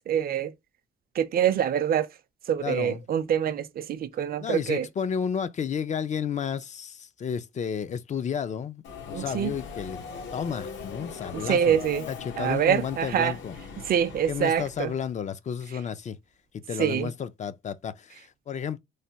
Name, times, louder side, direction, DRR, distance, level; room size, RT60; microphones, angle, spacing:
voice 1, 0.1-0.5 1.2-2.1 2.5-4.9 9.1-9.5 11.3-12.1 12.4-13.3 13.9-14.9 16.8-17.1, right 9 dB, 50° right, 0.5 m, -25 dB
voice 2, 2.6-3.1 4.4-10.0 10.3-11.8 12.1-13.5 14.3-16.2 16.7-18.8, left 7 dB, 35° left, 0.4 m, -32 dB
Subway metro underground, 8.8-15.1, left 5 dB, 70° left, 0.9 m, -40 dB
3.2 x 2.2 x 2.7 m
cardioid pair, 90°, 20 cm